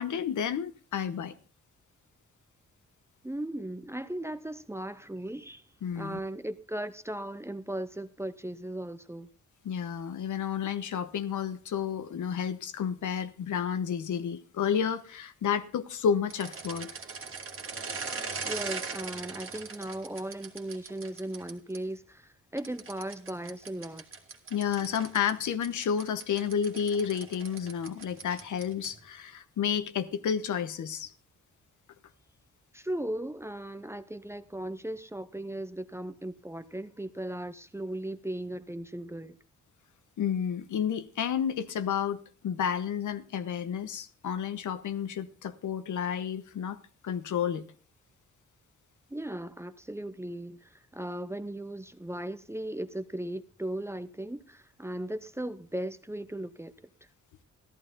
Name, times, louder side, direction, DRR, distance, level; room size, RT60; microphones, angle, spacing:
voice 1, 0.0-1.3 5.8-6.2 9.6-16.9 24.5-31.1 40.2-47.6, left 8 dB, 80° left, 1.1 m, -31 dB
voice 2, 3.2-5.6 5.9-9.3 18.4-24.0 32.7-39.4 49.1-56.7, right 1 dB, 10° right, 0.6 m, -37 dB
sound 1, 16.3-21.8 22.6-29.1, right 4 dB, 45° right, 1.9 m, -40 dB
14.0 x 11.0 x 3.9 m
cardioid pair, 115°, 30 cm